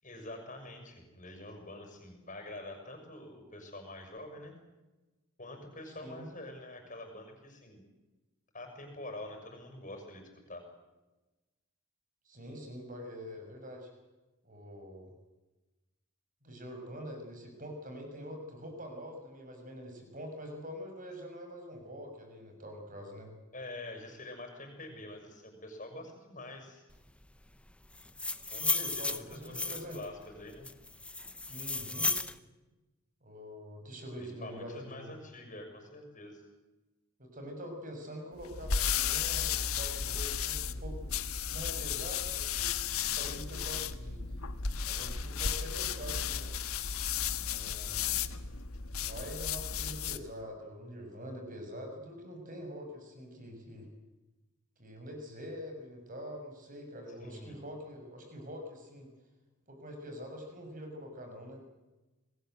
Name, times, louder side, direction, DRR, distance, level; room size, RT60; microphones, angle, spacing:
voice 1, 0.0-4.5 5.4-7.8 8.5-10.6 23.5-26.8 28.5-30.7 34.2-36.4 57.2-57.5, left 1 dB, 35° left, 5 dB, 6.6 m, -46 dB
voice 2, 12.2-13.9 14.4-15.1 16.4-23.3 28.6-30.0 31.5-32.2 33.2-35.1 37.2-41.1 41.4-42.7 43.0-44.4 44.9-46.6 47.4-48.3 49.0-53.9 54.8-59.1 59.7-61.6, equal, 35° right, 4 dB, 6.4 m, -45 dB
sound 1, 28.0-30.0 30.6-32.3, left 2 dB, 5° left, 0.8 m, -33 dB
sound 2, 38.4-50.3, left 7 dB, 80° left, 1.4 m, -34 dB
28.5 x 20.5 x 8.0 m, 1.1 s
head